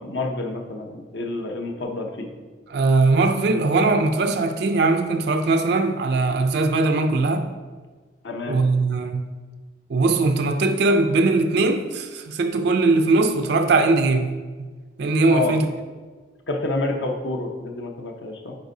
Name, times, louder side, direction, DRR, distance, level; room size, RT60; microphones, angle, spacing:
voice 1, 0.0-2.3 8.2-8.6 15.3-15.5 16.5-18.6, left 2 dB, 65° left, 0.7 m, -28 dB
voice 2, 2.7-7.5 8.5-9.3 9.9-14.3 15.0-15.7, right 3 dB, 55° right, 0.4 m, -20 dB
9.4 x 4.4 x 2.7 m
head